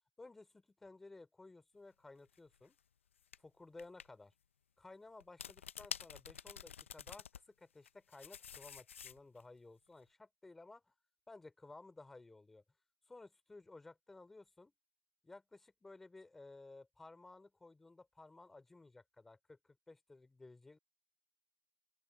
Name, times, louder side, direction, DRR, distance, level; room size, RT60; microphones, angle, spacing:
voice 1, 0.2-2.8 3.4-4.3 4.8-10.9 11.3-12.6 13.1-14.7 15.2-20.8, left 3 dB, 5° left, 2.8 m, -56 dB
sound 1, 2.3-2.5 3.3-3.4 3.8-4.1 5.2-7.4 7.8-9.4, left 8 dB, 55° left, 0.4 m, -48 dB
open air
hypercardioid pair, 160°, 8 cm